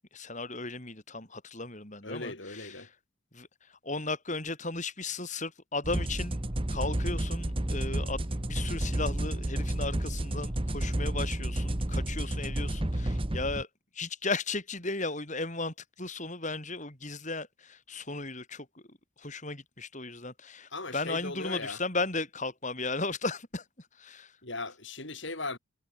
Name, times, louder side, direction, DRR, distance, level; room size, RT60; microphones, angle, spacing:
voice 1, 0.1-2.9 3.3-6.4 6.7-13.7 13.9-18.7 19.2-24.3, left 3 dB, 35° left, 5.7 m, -36 dB
voice 2, 2.0-2.9 20.7-21.8 24.4-25.6, left 3 dB, 55° left, 5.6 m, -38 dB
sound 1, 5.8-13.6, right 1 dB, 25° right, 1.3 m, -31 dB
head